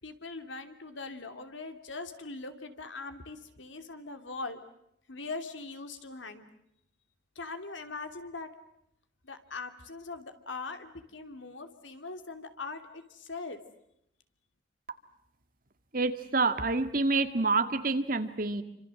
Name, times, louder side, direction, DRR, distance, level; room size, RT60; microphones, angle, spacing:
voice 1, 0.0-4.6 5.1-6.5 7.3-8.5 9.2-13.6, left 3 dB, 80° left, 8 dB, 2.8 m, -41 dB
voice 2, 15.9-18.6, right 3 dB, 45° right, 9 dB, 1.9 m, -27 dB
29.0 x 26.0 x 7.7 m, 0.77 s
head